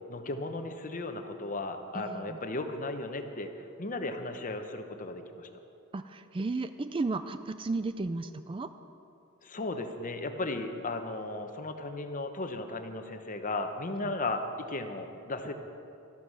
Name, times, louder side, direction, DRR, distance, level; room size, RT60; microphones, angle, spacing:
voice 1, 0.1-5.5 9.4-15.5, left 2 dB, 40° left, 7 dB, 0.9 m, -35 dB
voice 2, 1.9-2.4 5.9-8.7, right 3 dB, 25° right, 11 dB, 0.4 m, -34 dB
13.0 x 12.0 x 6.2 m, 2.7 s
head